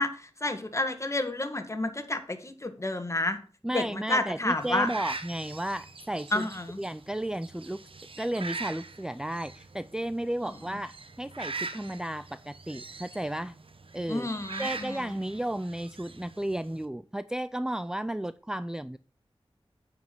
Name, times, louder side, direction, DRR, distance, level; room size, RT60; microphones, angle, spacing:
voice 1, 0.0-3.4 3.7-4.9 6.3-6.8 14.1-15.0, left 2 dB, 30° left, 8 dB, 1.6 m, -30 dB
voice 2, 3.6-6.5 6.8-7.8 8.2-13.6 13.9-14.3 14.6-19.0, right 1 dB, 5° right, 15 dB, 0.3 m, -33 dB
sound 1, 4.6-16.9, right 4 dB, 65° right, 1.0 m, -42 dB
9.3 x 4.8 x 7.7 m, 0.41 s
wide cardioid pair, 60°, 10 cm